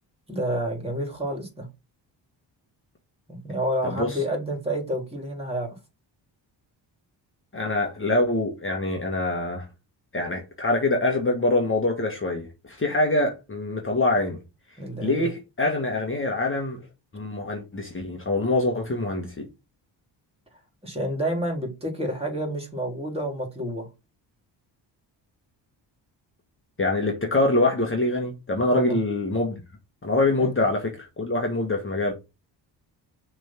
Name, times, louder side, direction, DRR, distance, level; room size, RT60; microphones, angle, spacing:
voice 1, 0.3-1.7 3.3-5.8 14.8-15.3 20.8-23.9 28.7-29.0 30.4-30.5, right 1 dB, 15° right, 3.5 m, -29 dB
voice 2, 3.8-4.2 7.5-9.7 10.1-14.4 15.0-16.9 17.1-19.5 26.8-29.5 30.0-32.1, left 2 dB, 25° left, 1.5 m, -25 dB
6.0 x 3.6 x 5.9 m
cardioid pair, 75°, 44 cm